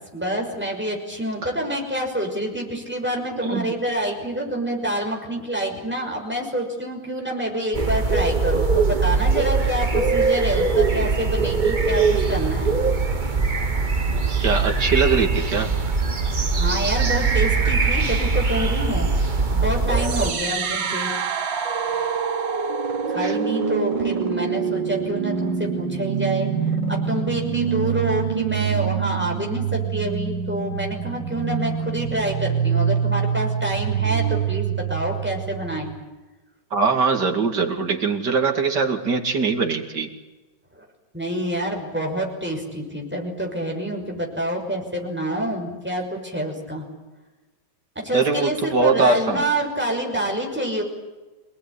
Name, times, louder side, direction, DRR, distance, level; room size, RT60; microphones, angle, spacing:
voice 1, 0.1-12.7 16.5-19.1 19.5-21.1 23.1-26.5 26.9-35.9 40.7-40.8 41.1-46.8 48.0-50.8, right 1 dB, 5° right, 0 dB, 6.0 m, -27 dB
voice 2, 3.4-3.7 14.4-15.7 23.2-23.4 36.7-40.1 48.1-49.4, right 4 dB, 65° right, 4 dB, 3.1 m, -22 dB
sound 1, 7.7-20.3, right 4 dB, 30° right, 1.4 m, -21 dB
sound 2, 19.9-35.9, right 7 dB, 85° right, 2.4 m, -25 dB
27.0 x 19.0 x 9.9 m, 1.2 s
omnidirectional pair, 2.0 m